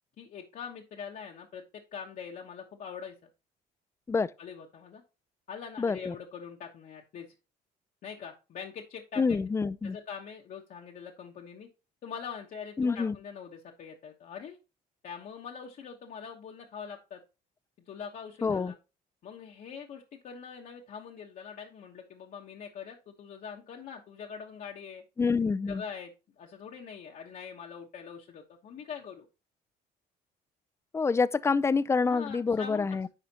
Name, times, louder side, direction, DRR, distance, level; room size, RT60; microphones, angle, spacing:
voice 1, 0.2-3.3 4.4-5.0 5.5-7.3 8.0-9.4 9.8-11.7 12.0-14.6 15.0-17.2 17.9-18.7 19.2-25.0 25.7-29.3 32.0-33.1, left 7 dB, 55° left, 1.1 m, -43 dB
voice 2, 5.8-6.1 9.2-10.0 12.8-13.1 18.4-18.7 25.2-25.8 30.9-33.1, left 4 dB, 15° left, 0.4 m, -27 dB
10.0 x 5.0 x 2.8 m
cardioid pair, 110°, 17 cm